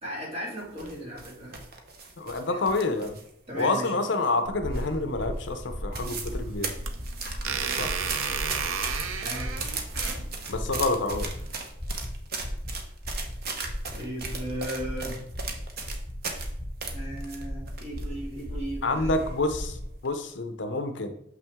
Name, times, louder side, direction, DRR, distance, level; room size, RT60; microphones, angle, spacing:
voice 1, 0.0-1.6 2.5-2.6 3.5-3.9 9.2-9.6 13.9-15.2 16.9-19.2, right 1 dB, 30° right, -2 dB, 2.0 m, -36 dB
sound 1, 0.6-3.3 3.6-4.4 4.7-5.1 5.4-5.5 5.7-6.4 6.6-16.5 16.8-18.0 18.4-18.5 19.1-19.5 19.9-20.1, right 4 dB, 50° right, 0.9 m, -37 dB
voice 2, 2.2-3.2 3.5-6.7 7.8-7.9 10.5-11.3 18.8-19.8 20.0-21.1, left 2 dB, 60° left, 8 dB, 0.6 m, -28 dB
sound 2, 4.4-19.9, equal, 15° right, 1.5 m, -36 dB
sound 3, 6.3-11.5, right 6 dB, 80° right, 0.6 m, -33 dB
6.2 x 5.9 x 3.5 m, 0.73 s
head